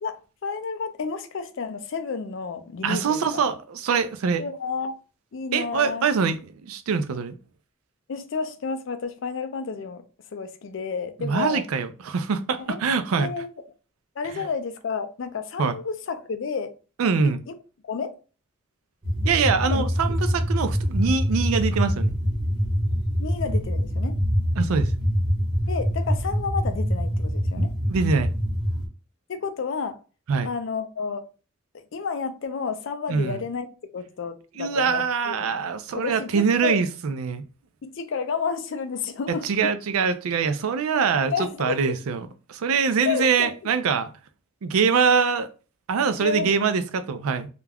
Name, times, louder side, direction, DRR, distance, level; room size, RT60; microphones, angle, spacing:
voice 1, 0.0-3.5 4.4-4.9 5.3-6.1 8.1-10.0 10.3-11.6 12.6-12.8 13.2-13.5 14.2-16.7 17.5-17.6 17.8-18.2 19.6-20.2 23.2-24.2 25.7-27.7 29.3-30.0 30.4-31.2 31.7-35.5 36.0-36.8 37.8-39.5 41.3-41.9 43.1-43.5 46.2-46.6, left 5 dB, 60° left, 0.4 m, -31 dB
voice 2, 2.8-4.4 5.5-7.4 11.2-13.3 14.3-14.4 15.6-15.8 17.0-17.4 19.2-22.1 24.6-24.9 27.6-28.3 30.3-30.5 33.1-33.4 34.6-37.4 39.4-42.2 42.5-44.1 44.6-45.5 45.9-47.5, right 5 dB, 90° right, 0.4 m, -24 dB
sound 1, 19.0-28.9, equal, 20° right, 1.0 m, -24 dB
2.3 x 2.2 x 3.3 m
head